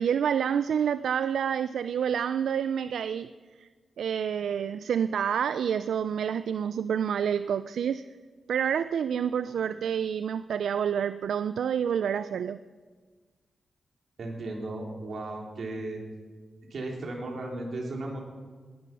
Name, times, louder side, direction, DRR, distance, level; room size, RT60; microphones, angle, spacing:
voice 1, 0.0-3.3 3.6-3.7 4.0-8.0 8.5-12.6, right 8 dB, 90° right, 13 dB, 0.3 m, -28 dB
voice 2, 14.2-16.0 16.7-18.2, right 2 dB, 65° right, 0 dB, 3.7 m, -35 dB
18.0 x 11.0 x 6.1 m, 1.5 s
cardioid pair, 80°, 0 cm